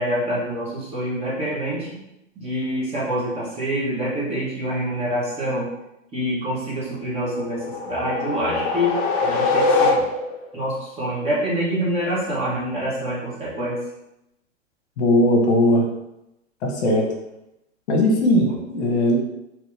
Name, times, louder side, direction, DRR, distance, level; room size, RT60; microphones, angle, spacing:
voice 1, 0.0-2.0 2.4-5.7 6.1-10.0 10.5-13.8, equal, 15° right, -7 dB, 1.1 m, -26 dB
sound 1, 7.3-10.5, left 3 dB, 35° left, 0.6 m, -22 dB
voice 2, 15.0-15.8 16.6-17.1 17.9-19.2, left 1 dB, 60° left, 1 dB, 0.9 m, -18 dB
3.0 x 2.7 x 3.3 m, 0.87 s
hypercardioid pair, 120°, 38 cm